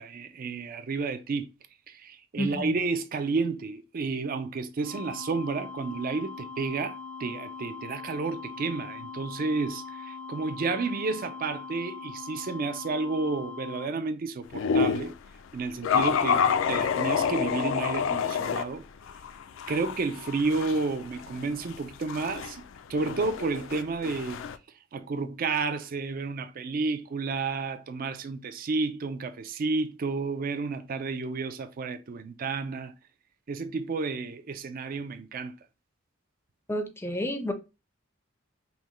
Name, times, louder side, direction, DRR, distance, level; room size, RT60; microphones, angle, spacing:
voice 1, 0.0-1.5 1.9-15.1 15.5-18.8 19.7-22.6 22.9-24.4 24.9-32.9 33.5-35.5, right 4 dB, 45° right, 0.4 m, -31 dB
voice 2, 2.4-2.7 36.7-37.5, equal, 10° left, 0.5 m, -30 dB
sound 1, 4.8-13.9, left 5 dB, 75° right, 1.0 m, -41 dB
sound 2, 14.5-15.1 15.8-18.6 19.1-24.6, left 6 dB, 70° left, 0.4 m, -28 dB
5.6 x 2.1 x 3.0 m
head